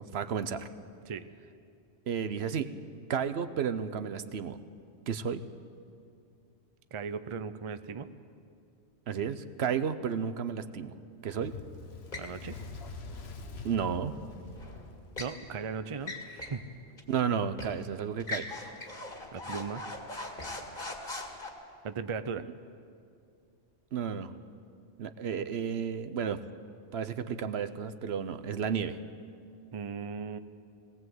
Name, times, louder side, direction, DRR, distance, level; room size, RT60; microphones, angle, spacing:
voice 1, 0.1-0.7 2.1-2.7 3.1-4.6 5.1-5.4 9.1-11.0 11.2-11.5 13.6-14.1 17.1-18.5 23.9-24.3 25.0-26.4 26.9-29.0, right 7 dB, 70° right, 11 dB, 1.0 m, -32 dB
voice 2, 6.9-8.1 12.2-12.6 15.2-16.7 19.3-19.8 21.8-22.5 29.7-30.4, right 5 dB, 35° right, 11 dB, 0.5 m, -37 dB
Fire, 11.2-15.8, left 3 dB, 70° left, 1.3 m, -45 dB
sound 1, 12.1-12.4 14.6-15.4 16.0-16.6 17.0-17.1 17.6-17.8 18.2-21.5, left 2 dB, 45° left, 2.2 m, -40 dB
19.0 x 18.0 x 7.9 m, 2.4 s
omnidirectional pair, 1.1 m